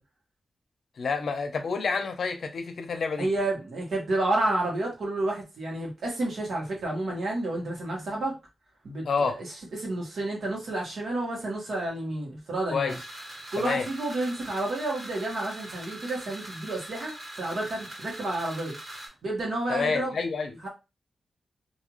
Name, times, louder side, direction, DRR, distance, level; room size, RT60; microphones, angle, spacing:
voice 1, 1.0-3.3 9.0-9.4 12.7-13.0 13.6-13.9 19.7-20.5, left 5 dB, 70° left, 0.5 m, -28 dB
voice 2, 3.2-8.3 8.8-9.0 9.4-13.0 13.5-18.7 19.2-20.2 20.6-20.7, right 2 dB, 80° right, 1.3 m, -30 dB
sound 1, 12.9-19.1, right 1 dB, 50° right, 1.6 m, -42 dB
2.7 x 2.4 x 3.0 m
wide cardioid pair, 170°, 0 cm